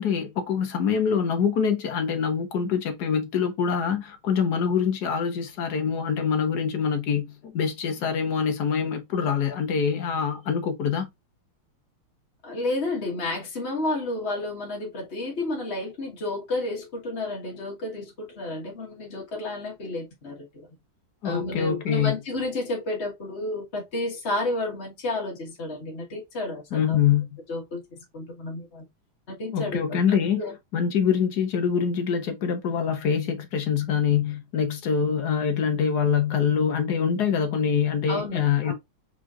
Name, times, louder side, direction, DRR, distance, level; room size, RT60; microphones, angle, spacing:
voice 1, 0.0-11.1 21.2-22.1 26.7-27.3 29.5-30.4 30.7-38.7, left 7 dB, 55° left, 1.3 m, -25 dB
voice 2, 12.4-20.5 21.2-27.0 27.5-28.9 29.3-29.8 30.1-30.5 38.1-38.7, left 2 dB, 35° left, 1.4 m, -31 dB
5.0 x 3.8 x 2.4 m
omnidirectional pair, 2.4 m